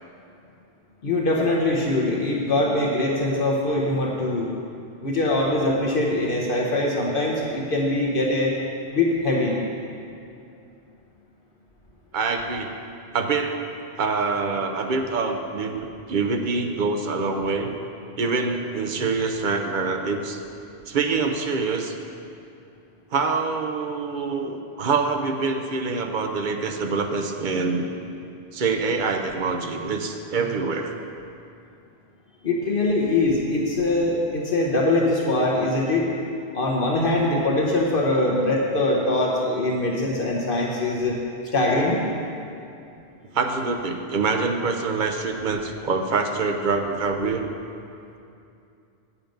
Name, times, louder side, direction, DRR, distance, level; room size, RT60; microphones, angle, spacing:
voice 1, 1.0-4.5 5.0-8.5 8.9-9.6 32.4-36.1 36.5-41.2 41.5-42.0, left 2 dB, 60° left, -2 dB, 1.1 m, -22 dB
voice 2, 12.1-12.7 13.1-13.6 14.0-17.7 18.2-20.4 20.9-21.9 23.1-27.9 28.5-30.9 43.3-47.4, right 4 dB, 55° right, 4 dB, 0.8 m, -25 dB
9.2 x 7.1 x 5.2 m, 2.6 s
omnidirectional pair, 1.1 m